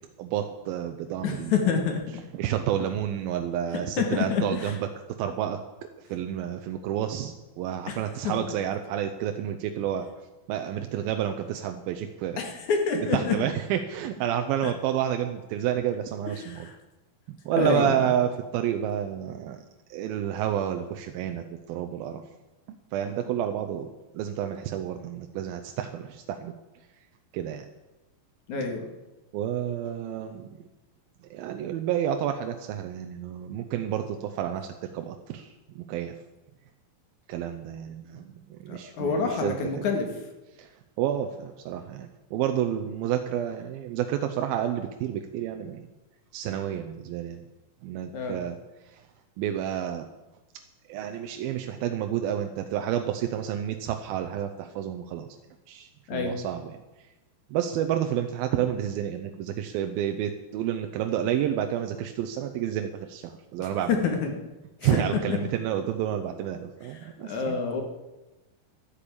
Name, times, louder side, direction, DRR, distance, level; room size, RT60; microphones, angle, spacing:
voice 1, 0.2-1.5 2.4-4.9 5.2-5.6 6.0-10.1 10.5-12.4 13.1-16.7 17.3-22.2 22.9-26.5 27.3-27.7 29.3-30.6 31.3-36.2 37.3-39.9 40.6-40.7 41.0-45.9 46.3-47.4 47.8-48.6 48.8-49.1 49.4-50.1 50.9-55.3 55.7-56.7 57.5-64.0 64.8-67.6, right 10 dB, 85° right, 6 dB, 2.6 m, -30 dB
voice 2, 1.2-2.2 4.0-4.8 7.9-8.0 12.4-13.4 14.6-14.7 16.4-16.7 17.6-18.2 28.5-28.9 38.7-40.1 48.1-48.4 56.1-56.4 63.6-64.3 64.8-65.0 67.0-67.8, left 5 dB, 55° left, 3 dB, 3.0 m, -27 dB
12.5 x 10.0 x 8.6 m, 1.1 s
omnidirectional pair, 4.3 m